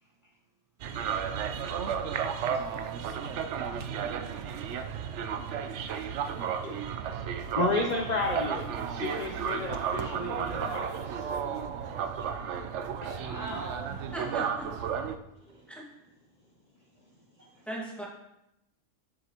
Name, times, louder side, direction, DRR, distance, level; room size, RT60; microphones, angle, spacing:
sound 1, 0.8-15.2, right 7 dB, 65° right, 0.8 m, -33 dB
voice 1, 1.1-2.2 13.1-14.0, right 1 dB, 15° right, -4 dB, 0.9 m, -43 dB
voice 2, 6.4-6.9 15.3-15.8 16.4-16.5 16.8-17.7, equal, 35° right, -2 dB, 1.4 m, -52 dB
voice 3, 7.5-11.4 13.0-13.2, left 3 dB, 45° left, 2 dB, 0.6 m, -32 dB
voice 4, 14.1-14.7 15.7-15.8 17.6-18.1, right 1 dB, ahead, -4 dB, 1.6 m, -38 dB
7.6 x 7.0 x 3.0 m, 0.84 s
omnidirectional pair, 1.4 m